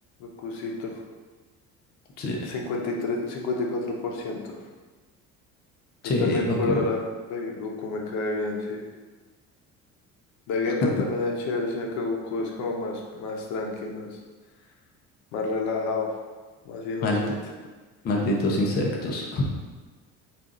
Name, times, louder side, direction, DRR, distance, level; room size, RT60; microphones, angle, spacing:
voice 1, 0.2-1.0 2.4-4.6 6.2-7.0 7.3-8.8 10.5-14.2 15.3-16.1 16.6-17.3, left 3 dB, 75° left, 0 dB, 0.7 m, -29 dB
voice 2, 6.0-6.8 17.0-17.2 18.0-19.4, left 1 dB, 35° left, -1 dB, 0.5 m, -25 dB
4.1 x 2.5 x 3.7 m, 1.3 s
cardioid pair, 165°, 29 cm